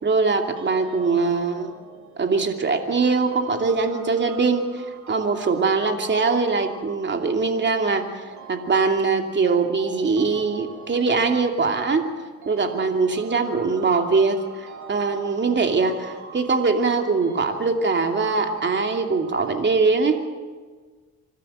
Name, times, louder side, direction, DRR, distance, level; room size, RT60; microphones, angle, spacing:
voice 1, 0.0-1.7 2.2-4.8 5.1-12.1 12.5-20.2, right 4 dB, 35° right, 5 dB, 2.7 m, -22 dB
sound 1, 0.6-19.8, right 6 dB, 70° right, 3.1 m, -43 dB
26.0 x 13.5 x 8.9 m, 1.4 s
cardioid pair, 90°, 30 cm